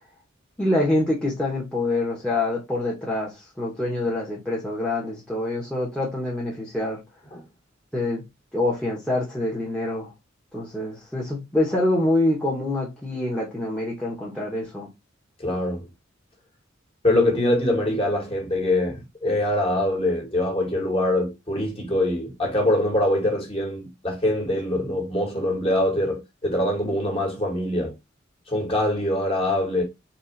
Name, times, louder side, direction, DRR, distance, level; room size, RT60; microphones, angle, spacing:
voice 1, 0.6-7.0 7.9-8.2 8.5-10.1 10.5-14.9, left 1 dB, 5° left, 1.2 m, -25 dB
voice 2, 15.4-15.9 17.0-27.9 28.5-29.8, left 1 dB, 30° left, 1.8 m, -24 dB
4.3 x 3.4 x 3.2 m
head